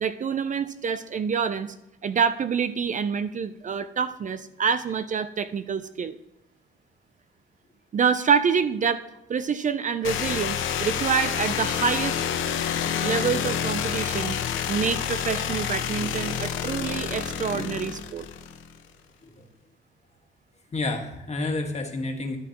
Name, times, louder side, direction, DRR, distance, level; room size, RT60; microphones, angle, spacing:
voice 1, 0.0-1.7 2.0-6.2 7.9-9.0 9.3-12.2 13.0-14.4 14.7-18.3, right 6 dB, 40° right, 12 dB, 0.5 m, -26 dB
Ominous Synth, 10.0-18.8, left 8 dB, 80° left, 0.9 m, -28 dB
voice 2, 20.7-22.4, left 2 dB, 35° left, 3 dB, 1.6 m, -30 dB
13.0 x 9.4 x 3.0 m, 0.86 s
cardioid pair, 90°, 20 cm